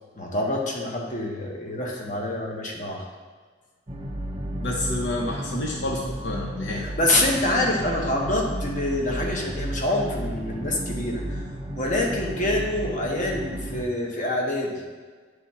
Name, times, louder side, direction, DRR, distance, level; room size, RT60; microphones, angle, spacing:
voice 1, 0.2-3.0 6.7-11.4 11.8-14.8, left 1 dB, 45° left, -1 dB, 1.1 m, -26 dB
sound 1, 3.9-13.8, right 1 dB, 25° right, 0.7 m, -33 dB
voice 2, 4.6-6.8, left 1 dB, 70° left, -1 dB, 0.8 m, -29 dB
9.3 x 3.5 x 4.2 m, 1.4 s
head